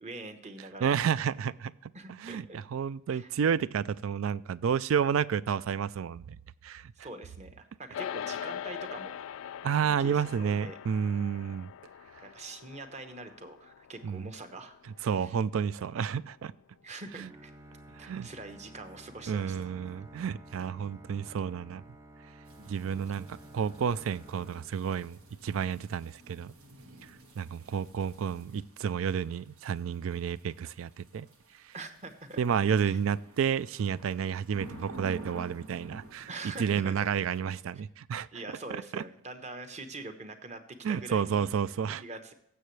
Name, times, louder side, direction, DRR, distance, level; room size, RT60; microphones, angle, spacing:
voice 1, 0.0-0.9 1.9-2.6 3.1-3.3 7.0-9.2 9.7-10.8 12.2-15.3 16.8-17.5 18.0-19.7 22.6-23.1 31.7-32.4 32.8-33.0 36.3-36.9 38.3-40.6 40.9-41.5 42.0-42.3, right 2 dB, 35° right, 8 dB, 1.0 m, -44 dB
voice 2, 0.8-1.7 2.2-6.2 6.6-6.9 9.6-11.7 14.0-14.3 15.0-16.5 17.2-17.3 18.0-18.3 19.3-21.8 22.7-23.3 23.5-26.5 27.4-31.3 32.4-36.3 36.6-38.3 38.9-39.0 40.8-42.0, right 7 dB, 70° right, 19 dB, 0.3 m, -30 dB
sound 1, 7.9-17.4, left 9 dB, 70° left, 0.3 m, -43 dB
Bowed string instrument, 17.2-25.4, right 1 dB, 15° right, 0.5 m, -52 dB
sound 2, 22.5-37.4, right 2 dB, 85° right, 1.8 m, -51 dB
15.0 x 6.9 x 3.2 m, 0.77 s
head